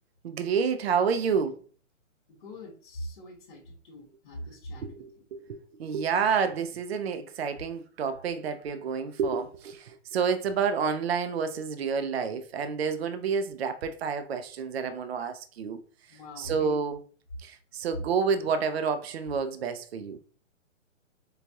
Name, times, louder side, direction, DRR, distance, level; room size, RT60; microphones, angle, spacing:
voice 1, 0.2-1.6 4.8-15.8 16.4-17.0 17.4-20.2, right 6 dB, 55° right, 0.5 m, -29 dB
voice 2, 2.3-5.0 16.1-16.7, equal, 40° left, 1.0 m, -42 dB
4.6 x 2.3 x 2.7 m
hypercardioid pair, 170°, 38 cm